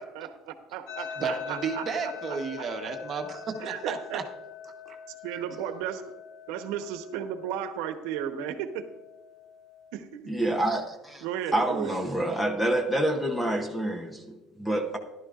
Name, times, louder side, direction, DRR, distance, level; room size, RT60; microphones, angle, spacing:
voice 1, 0.0-2.4 3.6-4.2 5.2-6.0 6.5-8.8 9.9-10.3 11.2-12.0, right 9 dB, 85° right, 7 dB, 1.1 m, -34 dB
sound 1, 0.9-9.9, left 7 dB, 65° left, 0.9 m, -43 dB
voice 2, 1.2-4.2 4.8-5.0, right 5 dB, 30° right, 4 dB, 1.1 m, -33 dB
voice 3, 10.3-11.2 11.5-15.0, right 1 dB, 5° left, 5 dB, 0.8 m, -27 dB
15.0 x 11.5 x 2.5 m, 1.1 s
cardioid pair, 160°, 0 cm